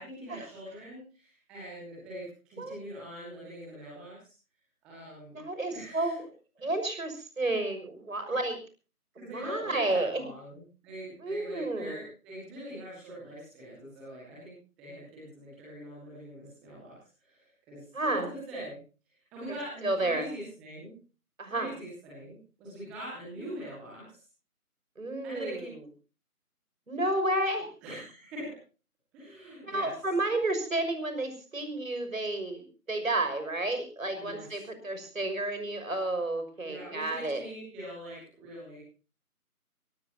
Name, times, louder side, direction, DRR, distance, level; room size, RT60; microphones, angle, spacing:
voice 1, 0.0-4.3 4.8-5.4 5.7-6.1 6.6-6.7 8.2-8.4 9.1-14.5 14.8-18.7 19.1-20.9 21.4-24.1 25.2-25.7 27.8-28.4 29.1-29.9 34.2-34.6 36.6-38.8, right 1 dB, ahead, -7 dB, 1.7 m, -43 dB
voice 2, 5.3-6.3 6.6-8.6 9.3-10.3 11.2-12.0 17.9-18.3 19.8-20.3 21.4-21.7 25.0-25.6 26.9-27.7 29.6-37.4, right 2 dB, 60° right, 8 dB, 6.3 m, -31 dB
23.5 x 19.5 x 2.8 m, 0.36 s
figure-of-eight pair, 165°, 45 cm